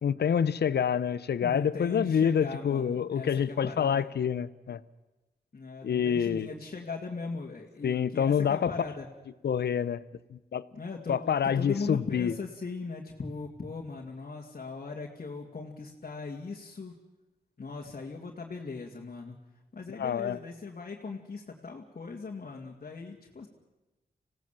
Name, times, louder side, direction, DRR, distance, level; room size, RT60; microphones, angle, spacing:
voice 1, 0.0-4.8 5.8-6.5 7.8-8.7 9.4-10.0 10.3-10.7 11.1-12.3 20.0-20.4, left 8 dB, 80° left, 17 dB, 0.7 m, -27 dB
voice 2, 1.4-4.1 5.5-9.1 10.7-11.2 11.4-16.9 17.6-19.4 19.7-23.5, left 4 dB, 55° left, -2 dB, 2.5 m, -39 dB
26.0 x 17.5 x 7.6 m, 1.1 s
cardioid pair, 65°, 17 cm